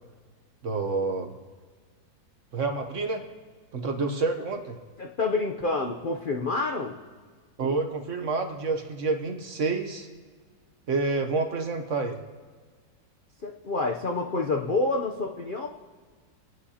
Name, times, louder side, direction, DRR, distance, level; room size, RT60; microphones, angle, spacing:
voice 1, 0.6-1.3 2.5-3.2 3.7-4.8 7.6-10.1 10.9-12.2, right 3 dB, 50° right, 5 dB, 1.0 m, -28 dB
voice 2, 5.0-7.0 13.4-15.7, left 3 dB, 65° left, 1 dB, 0.5 m, -28 dB
27.0 x 9.7 x 2.8 m, 1.5 s
omnidirectional pair, 1.9 m